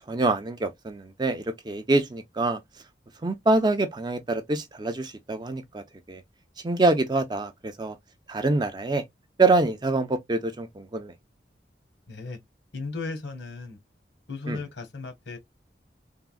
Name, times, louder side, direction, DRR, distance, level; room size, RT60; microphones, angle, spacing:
voice 1, 0.1-2.6 3.2-5.8 6.1-6.2 6.6-7.9 8.3-9.0 9.4-11.1 14.5-14.6, right 2 dB, 25° right, 0.4 m, -25 dB
voice 2, 12.1-12.4 12.7-13.8 14.3-15.4, left 3 dB, 85° left, 1.2 m, -35 dB
3.5 x 2.1 x 2.2 m
head